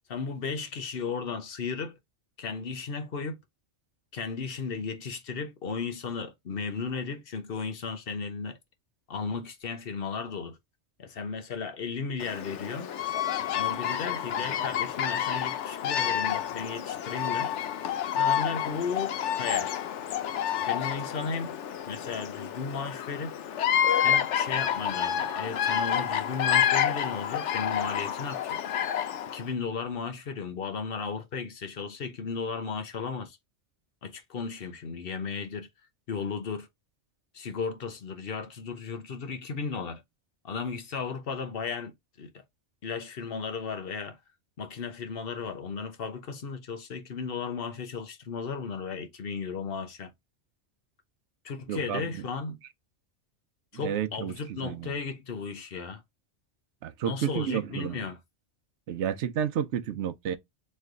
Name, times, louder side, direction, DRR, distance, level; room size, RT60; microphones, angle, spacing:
voice 1, 0.1-2.0 2.4-3.4 4.1-8.6 9.1-10.6 11.0-12.9 13.5-17.5 18.1-19.7 20.6-21.6 21.8-23.3 24.0-28.6 29.3-33.4 34.0-35.7 36.1-36.7 37.3-40.0 40.4-42.3 42.8-44.2 44.6-50.1 51.4-52.6 53.7-56.0 57.0-58.2, left 5 dB, 55° left, 1.1 m, -35 dB
Bird vocalization bird call bird song, 12.2-29.5, left 9 dB, 90° left, 1.0 m, -29 dB
voice 2, 51.7-52.2 53.7-54.9 56.8-58.0 58.9-60.4, right 9 dB, 80° right, 0.9 m, -31 dB
3.2 x 3.2 x 3.7 m
omnidirectional pair, 1.2 m